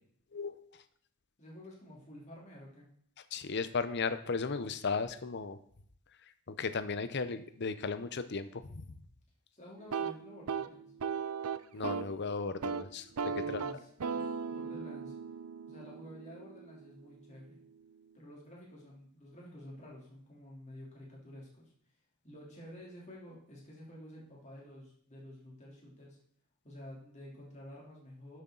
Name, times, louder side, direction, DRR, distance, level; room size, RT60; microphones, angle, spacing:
voice 1, 0.3-0.7 3.3-5.6 6.5-9.0 11.7-13.1 13.5-13.6, left 4 dB, 50° left, 12 dB, 0.7 m, -35 dB
voice 2, 1.4-2.9 9.5-10.9 13.2-15.2 15.7-17.6 18.1-21.7 22.2-26.2 26.6-28.4, left 1 dB, 30° left, -4 dB, 3.3 m, -51 dB
sound 1, 9.8-12.2 12.5-12.8 13.2-17.0, right 6 dB, 85° right, 0.6 m, -38 dB
11.5 x 7.9 x 3.9 m, 0.65 s
head